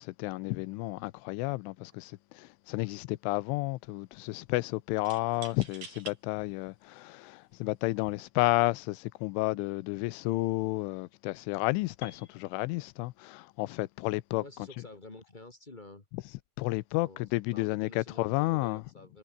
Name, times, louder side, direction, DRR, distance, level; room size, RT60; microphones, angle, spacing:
voice 1, 0.0-14.4 16.6-18.8, left 21 dB, 85° left, 3.2 m, -31 dB
sound 1, 1.9-2.2 2.5-3.1 5.1-6.2 6.9-7.0 7.9-8.2, right 5 dB, 45° right, 5.6 m, -47 dB
Piano, 12.0-15.9, left 6 dB, 40° left, 3.6 m, -56 dB
voice 2, 14.4-16.0 17.0-19.2, left 2 dB, 20° left, 1.2 m, -50 dB
omnidirectional pair, 5.5 m